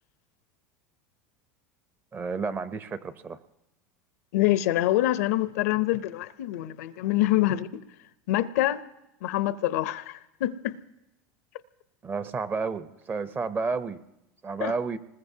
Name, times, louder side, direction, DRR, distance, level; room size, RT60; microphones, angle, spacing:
voice 1, 2.1-3.4 12.0-14.0 14.4-15.0, right 4 dB, 25° right, 0.6 m, -31 dB
voice 2, 4.3-7.8 8.3-8.8 9.2-10.8 14.6-14.7, left 15 dB, 80° left, 0.6 m, -25 dB
25.0 x 20.0 x 2.7 m
supercardioid pair, 120°, 8 cm